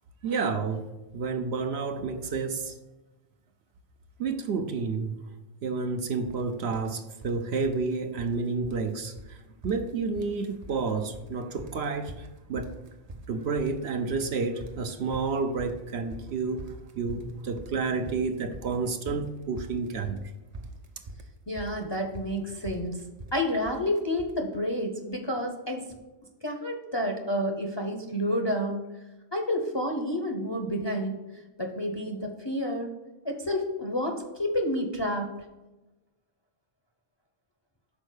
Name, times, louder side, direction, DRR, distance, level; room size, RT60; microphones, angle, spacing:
voice 1, 0.2-2.7 4.2-5.2 5.6-9.4 9.6-12.7 13.3-16.7 17.0-20.2, right 4 dB, 65° right, 6 dB, 0.8 m, -30 dB
sound 1, 6.2-6.4 6.7-7.4 7.6-8.4 8.6-8.9 9.2-9.3 9.6-10.4 10.6-11.3 11.6-24.4, right 2 dB, 40° right, 0.6 m, -43 dB
voice 2, 21.5-23.0 23.3-25.9 26.4-28.8 29.3-32.9 33.2-35.3, equal, 25° left, 3 dB, 0.6 m, -30 dB
6.2 x 4.3 x 6.5 m, 1.1 s
omnidirectional pair, 1.3 m